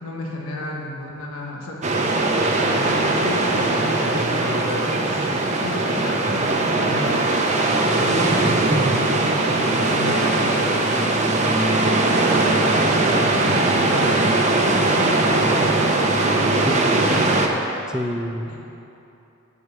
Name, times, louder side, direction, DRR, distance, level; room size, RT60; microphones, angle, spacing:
voice 1, 0.0-2.2 2.5-6.3 6.5-7.3 8.0-14.3 14.6-15.8 16.4-17.3 18.5-18.6, left 1 dB, 90° left, -2 dB, 1.3 m, -32 dB
sound 1, 1.8-17.5, right 2 dB, 35° right, 0.7 m, -20 dB
voice 2, 8.7-9.0 16.7-17.1 17.9-18.5, equal, 5° right, 4 dB, 0.5 m, -26 dB
9.8 x 5.2 x 8.2 m, 2.9 s
head